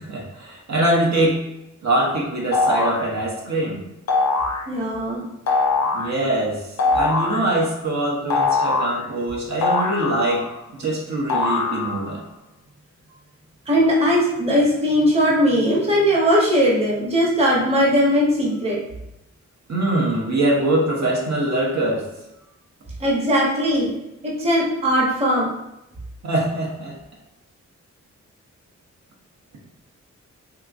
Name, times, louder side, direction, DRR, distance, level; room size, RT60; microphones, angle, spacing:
voice 1, 0.0-1.4 1.8-3.8 5.9-6.6 6.9-10.5 10.7-12.2 19.7-22.0 26.2-26.9, right 1 dB, 70° right, -3 dB, 0.8 m, -23 dB
sound 1, 2.5-3.1 4.1-4.6 5.5-6.1 6.8-7.4 8.3-9.0 9.6-10.6 11.3-12.1, left 3 dB, 70° left, 0.5 m, -21 dB
voice 2, 4.7-5.2 13.7-18.8 23.0-23.9 24.2-25.5, equal, 20° right, -5 dB, 0.7 m, -19 dB
3.5 x 2.8 x 2.4 m, 0.88 s
wide cardioid pair, 165°, 29 cm